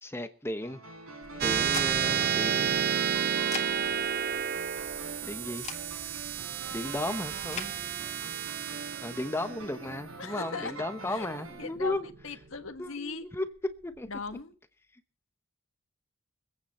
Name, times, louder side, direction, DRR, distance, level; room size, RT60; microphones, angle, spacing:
voice 1, 0.0-0.8 1.4-2.8 5.2-5.7 6.7-7.7 9.0-12.1 12.8-13.5 13.8-14.1, left 1 dB, 10° left, 0.9 m, -35 dB
sound 1, 0.6-11.7, right 3 dB, 85° right, 5.4 m, -45 dB
sound 2, 1.2-7.7, left 5 dB, 35° left, 3.1 m, -45 dB
sound 3, 1.4-12.3, right 8 dB, 50° right, 0.6 m, -31 dB
voice 2, 10.2-13.3 14.1-14.6, left 4 dB, 70° left, 1.6 m, -39 dB
24.5 x 9.2 x 4.2 m
head